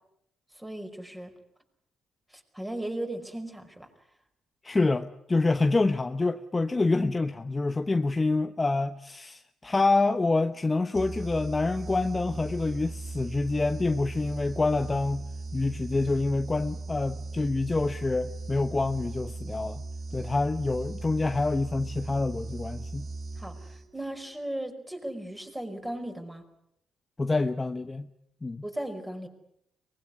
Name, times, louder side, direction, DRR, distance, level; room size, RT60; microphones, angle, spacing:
voice 1, 0.6-1.3 2.5-3.9 23.4-23.6 23.9-26.4 28.6-29.3, right 1 dB, 10° right, 4 dB, 5.1 m, -36 dB
voice 2, 4.6-15.2 15.5-19.8 20.1-23.1 27.2-28.1 28.4-28.6, left 3 dB, 20° left, 8 dB, 1.0 m, -27 dB
sound 1, 10.9-24.1, right 3 dB, 40° right, 2.0 m, -38 dB
23.5 x 20.5 x 9.7 m, 0.75 s
cardioid pair, 90°, 0 cm